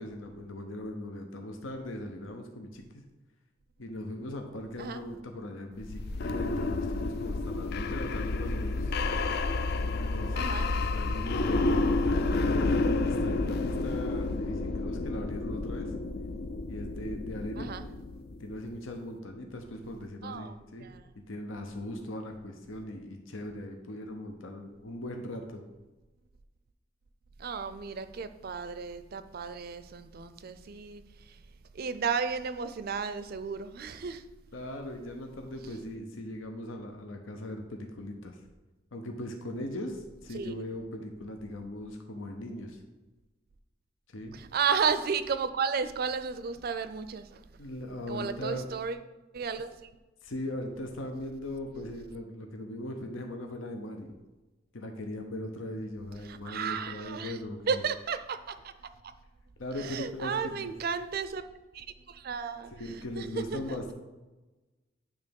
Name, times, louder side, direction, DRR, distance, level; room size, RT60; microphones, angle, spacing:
voice 1, 0.0-3.0 3.8-8.9 9.8-10.4 10.7-15.9 16.7-17.7 18.4-20.9 21.1-25.6 34.5-38.4 38.9-42.8 44.1-44.4 47.6-48.7 50.2-54.1 54.7-57.8 59.6-60.7 62.7-63.9, left 1 dB, 85° left, 4 dB, 0.8 m, -39 dB
sound 1, 5.8-18.6, left 3 dB, 55° left, 0.4 m, -30 dB
voice 2, 10.3-10.7 17.6-17.9 20.2-20.5 20.8-21.0 27.4-31.4 31.7-34.2 40.3-40.5 44.3-47.4 48.1-49.0 49.3-49.9 56.2-57.4 57.7-58.7 59.0-59.1 59.8-61.4 61.7-63.6, right 6 dB, 50° right, 11 dB, 0.4 m, -33 dB
9.0 x 3.4 x 5.3 m, 1.1 s
head